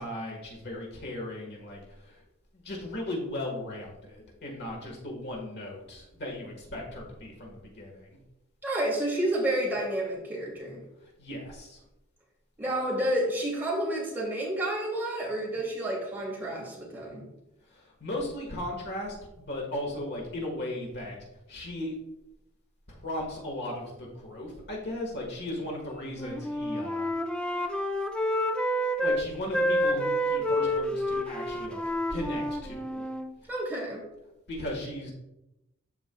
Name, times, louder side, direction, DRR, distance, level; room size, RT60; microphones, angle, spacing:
voice 1, 0.0-2.2 2.5-8.2 11.2-11.8 17.7-21.2 21.5-22.0 22.9-27.1 27.5-27.7 29.0-31.8 32.1-33.1 33.4-33.5 34.5-35.1, left 1 dB, 55° left, 0 dB, 1.6 m, -37 dB
voice 2, 8.6-10.8 12.6-17.3 33.5-34.1, right 1 dB, 10° right, -4 dB, 2.5 m, -30 dB
Wind instrument woodwind instrument, 26.1-29.2 29.5-33.3, equal, 5° left, 0.5 m, -29 dB
13.0 x 4.5 x 2.3 m, 0.91 s
head